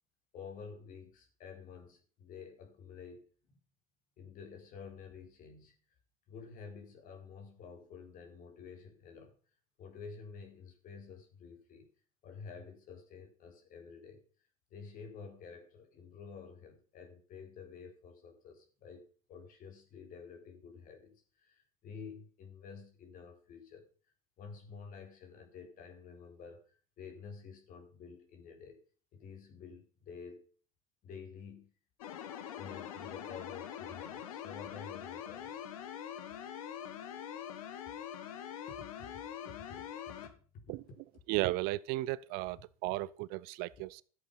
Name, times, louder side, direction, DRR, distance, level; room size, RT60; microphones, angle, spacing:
voice 1, 0.3-3.6 4.2-5.8 6.3-9.4 9.8-11.9 12.2-14.2 14.7-23.9 24.4-26.6 27.0-28.8 29.1-30.5 31.0-31.7 32.6-35.6 38.7-39.2 39.5-40.8, left 5 dB, 50° left, 4.6 m, -50 dB
sound 1, 32.0-40.3, left 9 dB, 75° left, 1.8 m, -44 dB
voice 2, 41.3-44.0, right 19 dB, 55° right, 0.6 m, -35 dB
13.5 x 8.1 x 5.7 m
hypercardioid pair, 75°, 18 cm